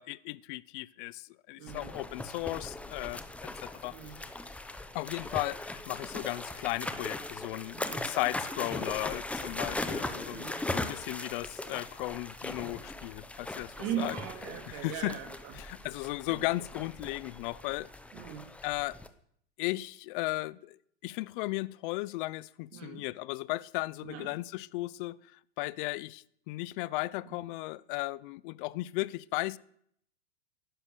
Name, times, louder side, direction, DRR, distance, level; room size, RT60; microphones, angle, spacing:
voice 1, 0.0-3.2 3.6-4.0 4.9-14.1 14.7-15.1 15.6-17.9 18.6-19.0 19.6-20.8 21.0-25.2 25.6-29.6, left 20 dB, 45° left, 0.6 m, -36 dB
voice 2, 1.6-2.0 3.9-4.2 7.7-8.0 10.3-10.7 13.8-15.5 16.3-16.4 18.1-18.5 22.7-23.1 24.0-24.3 27.3-27.4, right 9 dB, 40° right, 3.5 m, -39 dB
sound 1, 1.7-19.1, left 2 dB, 5° left, 0.8 m, -39 dB
15.0 x 11.5 x 6.7 m
supercardioid pair, 135°, 35 cm